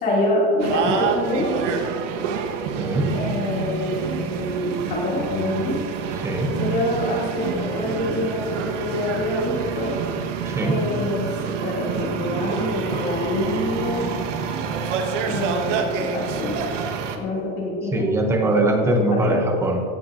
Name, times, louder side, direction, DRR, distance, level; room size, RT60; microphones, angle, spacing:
voice 1, 0.0-1.6 3.1-5.8 6.5-9.9 10.6-14.1 15.3-16.6 17.2-18.0 18.4-18.5 18.8-19.4, left 1 dB, 25° left, -5 dB, 2.5 m, -26 dB
sound 1, 0.6-17.2, right 6 dB, 80° right, 1.4 m, -27 dB
voice 2, 2.8-3.2 6.1-6.5 10.4-10.8 17.9-19.8, right 1 dB, 10° right, 4 dB, 0.6 m, -21 dB
17.0 x 12.5 x 2.6 m, 2.4 s
supercardioid pair, 180°, 36 cm